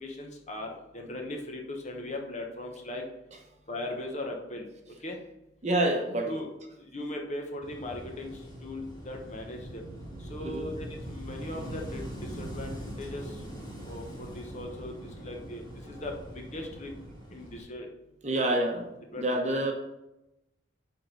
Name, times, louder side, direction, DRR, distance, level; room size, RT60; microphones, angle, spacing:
voice 1, 0.0-3.0 3.7-4.7 5.0-5.2 6.3-6.5 6.9-8.3 8.6-9.8 10.3-12.0 12.4-13.2 13.8-15.0 15.2-16.9 17.3-17.9 18.3-18.4 19.1-19.5, left 1 dB, 35° left, 2 dB, 1.0 m, -38 dB
voice 2, 5.6-6.3 10.4-10.7 18.2-18.9 19.2-19.7, right 1 dB, 35° right, 2 dB, 0.9 m, -27 dB
Wind / Waves surf, 7.6-17.6, right 1 dB, 20° left, 2.0 m, -42 dB
6.3 x 4.5 x 5.1 m, 0.92 s
head